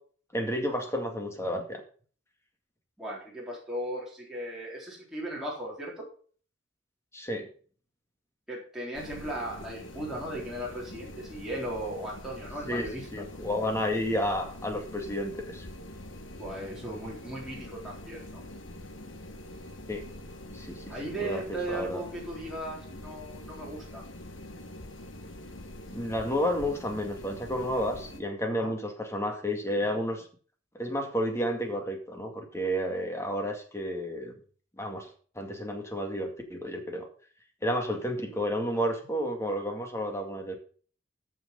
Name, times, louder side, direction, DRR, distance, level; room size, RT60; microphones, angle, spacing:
voice 1, 0.3-1.8 7.1-7.5 12.7-15.7 19.9-20.0 20.5-21.4 21.7-22.0 25.9-30.3 30.7-34.4 34.8-35.1 35.4-37.1 37.6-40.6, equal, 15° left, 3 dB, 2.2 m, -31 dB
voice 2, 3.0-6.0 8.5-13.1 16.4-18.4 20.9-24.0 28.5-28.7, right 1 dB, ahead, -6 dB, 3.8 m, -37 dB
sound 1, 8.9-28.2, left 1 dB, 75° left, 1.6 m, -44 dB
13.5 x 6.3 x 5.4 m, 0.44 s
head